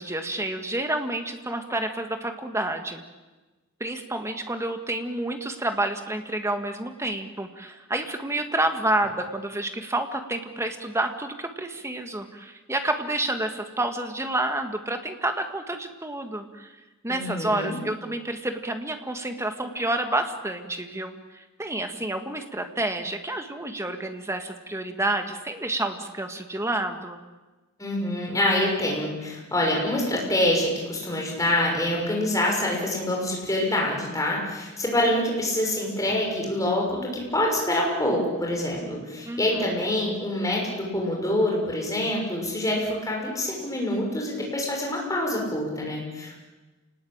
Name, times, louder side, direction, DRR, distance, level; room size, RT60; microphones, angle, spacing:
voice 1, 0.0-3.0 3.8-16.7 17.0-27.2 39.3-39.6, right 1 dB, 15° right, 6 dB, 1.9 m, -29 dB
voice 2, 17.1-17.8 27.8-46.4, left 1 dB, 15° left, -1 dB, 6.4 m, -26 dB
28.5 x 19.5 x 8.9 m, 1.2 s
head